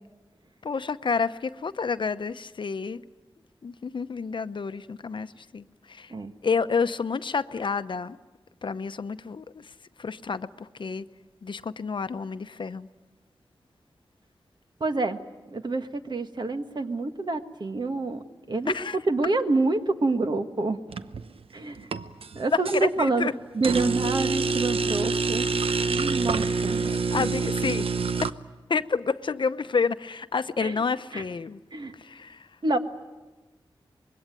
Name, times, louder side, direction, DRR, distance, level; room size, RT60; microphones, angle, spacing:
voice 1, 0.6-3.0 3.6-6.1 6.4-8.2 8.6-11.1 11.4-12.9 18.7-19.0 22.5-23.3 26.8-27.9 28.7-31.6 31.9-32.5, left 5 dB, 60° left, 12 dB, 0.8 m, -29 dB
voice 2, 14.8-15.2 15.5-18.7 19.1-20.8 21.5-21.9 22.3-23.3 23.5-25.5 25.9-26.8 27.2-27.3 30.6-30.8 31.1-31.2 31.7-31.9 32.6-32.8, right 3 dB, 50° right, 7 dB, 1.6 m, -27 dB
sound 1, 20.9-21.4 21.8-22.8 23.6-28.3, right 4 dB, 90° right, 0.8 m, -26 dB
25.0 x 22.0 x 9.1 m, 1.2 s
wide cardioid pair, 110°, 9 cm